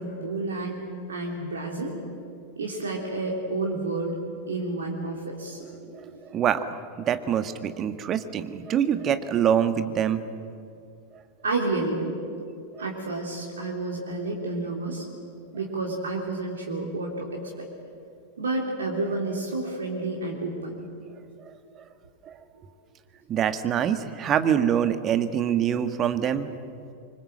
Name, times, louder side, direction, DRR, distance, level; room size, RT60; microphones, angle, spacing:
voice 1, 0.0-1.9 2.6-4.2 4.5-5.6 5.9-6.2 11.4-12.2 12.8-15.1 15.5-17.7 18.4-20.8, right 2 dB, 70° right, -1 dB, 3.3 m, -30 dB
voice 2, 5.6-6.0 6.3-10.2 12.8-12.9 21.4-21.5 22.2-22.3 23.3-26.6, right 9 dB, 30° right, 10 dB, 1.5 m, -25 dB
26.0 x 24.0 x 7.7 m, 2.5 s
figure-of-eight pair, 90°, 0 cm